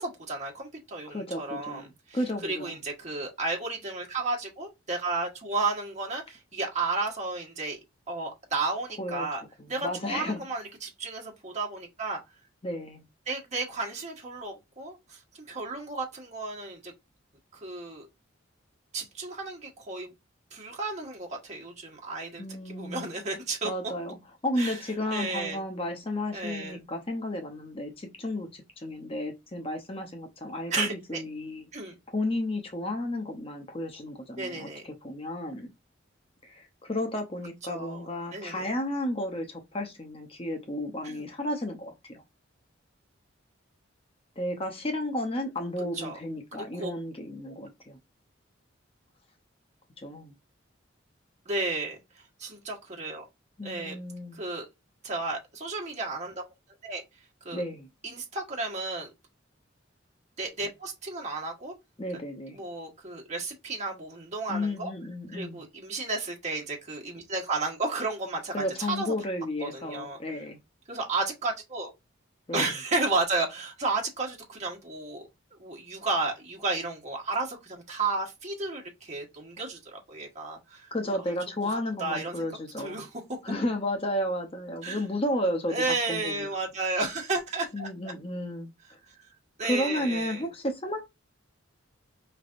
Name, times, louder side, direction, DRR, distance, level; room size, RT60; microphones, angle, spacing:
voice 1, 0.0-7.8 8.1-9.4 9.7-12.2 13.3-16.9 17.5-18.1 18.9-20.1 20.5-23.7 24.6-24.8 25.1-25.6 26.3-26.8 30.7-31.2 31.7-31.9 34.4-34.8 37.6-38.7 41.0-41.3 45.9-46.2 46.5-46.9 47.4-47.5 51.4-53.2 53.6-54.0 54.3-54.7 55.0-56.4 56.8-57.0 57.4-57.6 58.0-59.1 60.4-61.7 62.5-64.9 65.3-69.1 69.6-70.2 70.9-71.9 72.5-81.2 82.0-82.5 82.8-83.1 84.8-85.0 85.7-87.9 89.6-90.5, right 3 dB, 35° right, 1.5 m, -33 dB
voice 2, 1.1-2.7 9.0-9.3 9.8-10.4 12.6-13.0 22.4-23.1 23.6-24.2 24.4-31.7 32.1-35.7 36.4-42.2 44.4-48.0 50.0-50.3 53.6-54.4 57.5-57.9 62.0-62.6 64.5-65.6 68.5-70.6 72.5-72.7 80.9-83.1 83.4-86.5 87.7-88.7 89.6-91.1, left 1 dB, 30° left, 0.7 m, -33 dB
5.2 x 3.3 x 2.5 m
head